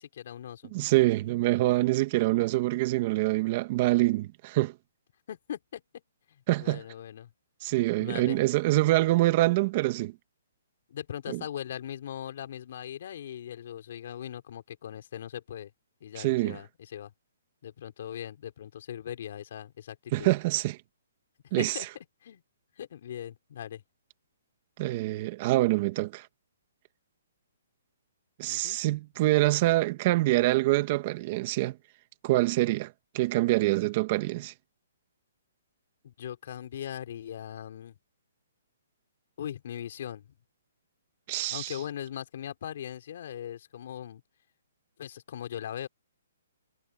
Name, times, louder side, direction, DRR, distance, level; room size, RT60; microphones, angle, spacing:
voice 1, 0.0-0.7 5.3-5.8 6.3-7.3 8.0-8.4 10.9-15.7 16.0-17.1 17.6-20.3 21.6-22.4 22.8-23.8 28.5-28.8 36.0-38.0 39.4-40.3 41.5-44.2 45.0-45.9, left 10 dB, 50° left, 3.9 m, -40 dB
voice 2, 0.7-4.7 6.5-6.8 7.6-10.1 11.3-11.4 16.2-16.6 20.1-20.8 21.5-21.8 24.8-26.3 28.4-31.8 32.2-34.5 41.3-41.7, right 18 dB, 30° right, 1.8 m, -25 dB
hypercardioid pair, 165°, 0 cm